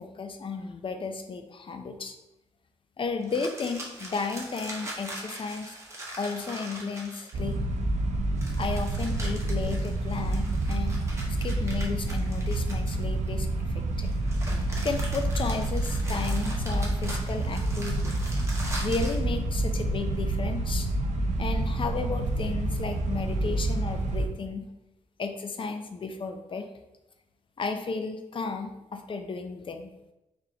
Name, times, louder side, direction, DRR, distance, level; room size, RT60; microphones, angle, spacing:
voice 1, 0.0-2.1 3.0-5.8 6.2-7.6 8.6-11.0 11.3-14.1 14.8-18.2 18.8-20.9 21.4-24.7 25.2-26.7 27.6-30.1, left 4 dB, 45° left, 6 dB, 0.5 m, -33 dB
sound 1, 3.2-7.5 8.4-13.3 14.0-19.2, right 1 dB, 20° right, 1.1 m, -41 dB
sound 2, 7.3-24.3, right 2 dB, 70° right, 0.5 m, -28 dB
3.7 x 3.5 x 2.8 m, 0.93 s
cardioid pair, 70°, 13 cm